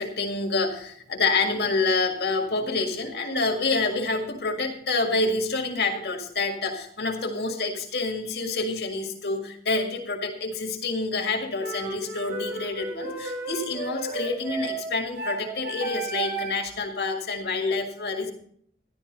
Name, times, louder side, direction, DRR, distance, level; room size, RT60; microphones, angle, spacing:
voice 1, 0.0-18.3, left 3 dB, 70° left, 3 dB, 1.9 m, -27 dB
sound 1, 11.6-16.7, right 4 dB, 85° right, 3.4 m, -34 dB
13.0 x 11.5 x 4.0 m, 0.63 s
head